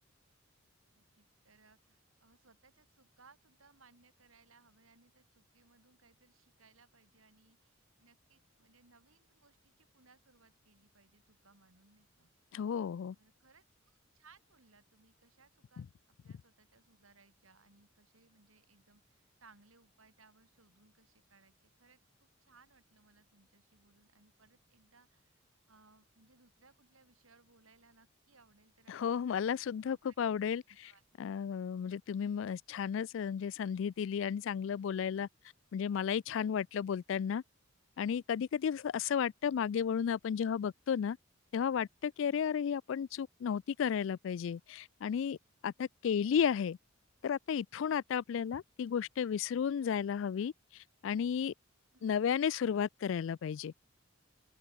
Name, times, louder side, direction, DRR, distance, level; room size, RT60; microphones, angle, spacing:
voice 1, 0.9-12.3 13.1-15.9 16.2-21.5 21.8-25.4 25.7-30.2 30.8-31.0 42.3-42.4 45.8-45.9 51.9-52.1, right 4 dB, 85° right, 4.0 m, -66 dB
voice 2, 12.5-13.2 15.8-15.9 28.9-30.9 31.2-35.3 35.7-37.4 38.0-41.2 41.5-45.4 45.6-46.8 47.2-51.5 52.0-53.7, left 7 dB, 65° left, 0.3 m, -33 dB
open air
head